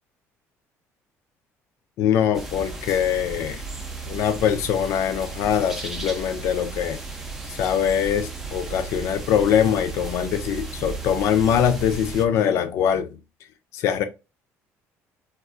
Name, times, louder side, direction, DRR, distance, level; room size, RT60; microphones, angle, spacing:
voice 1, 2.0-3.6 4.1-7.0 7.6-13.1 13.7-14.0, left 9 dB, 60° left, 0.4 m, -22 dB
sound 1, 2.3-12.3, right 4 dB, 5° right, 0.6 m, -35 dB
4.1 x 2.4 x 2.4 m
cardioid pair, 160°, 5 cm